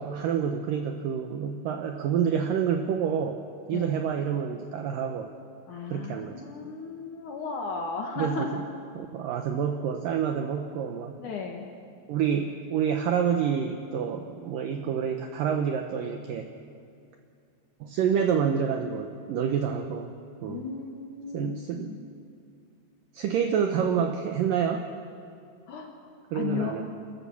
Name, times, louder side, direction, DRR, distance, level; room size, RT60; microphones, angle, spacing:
voice 1, 0.0-3.4 3.7-5.3 5.9-6.4 8.2-8.5 9.0-11.2 12.1-16.5 17.8-20.1 20.4-20.7 21.3-21.9 23.1-24.9 26.3-26.9, right 7 dB, 80° right, 5 dB, 2.0 m, -28 dB
voice 2, 5.7-8.6 11.2-11.7 20.5-22.0 23.5-24.0 25.7-25.9 26.3-26.8, left 5 dB, 60° left, 2 dB, 2.3 m, -35 dB
28.5 x 13.5 x 7.0 m, 2.3 s
omnidirectional pair, 5.0 m